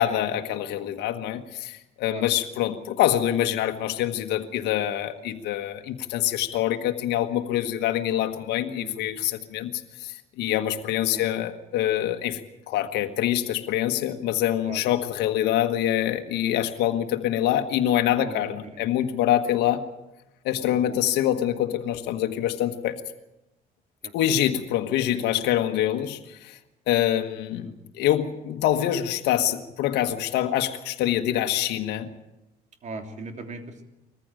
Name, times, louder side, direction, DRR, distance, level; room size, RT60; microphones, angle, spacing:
voice 1, 0.0-12.4 12.7-19.8 20.4-23.0 24.1-26.6 26.9-32.1, left 12 dB, 85° left, 6 dB, 1.4 m, -25 dB
voice 2, 20.6-21.0 24.0-24.1 25.1-25.2 27.5-27.7 32.8-33.8, right 3 dB, 45° right, 5 dB, 3.1 m, -39 dB
21.0 x 14.5 x 9.1 m, 0.93 s
cardioid pair, 110°, 17 cm